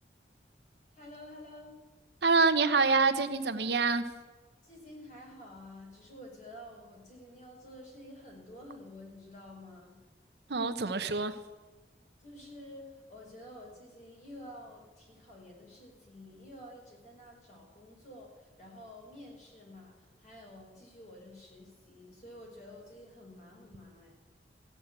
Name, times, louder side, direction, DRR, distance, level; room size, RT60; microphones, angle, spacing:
voice 1, 0.9-1.8 4.6-10.0 12.2-24.2, left 1 dB, 40° left, -1 dB, 4.4 m, -50 dB
voice 2, 2.2-4.0 10.5-11.4, right 4 dB, 65° right, 9 dB, 0.9 m, -26 dB
15.0 x 8.4 x 8.2 m, 1.2 s
head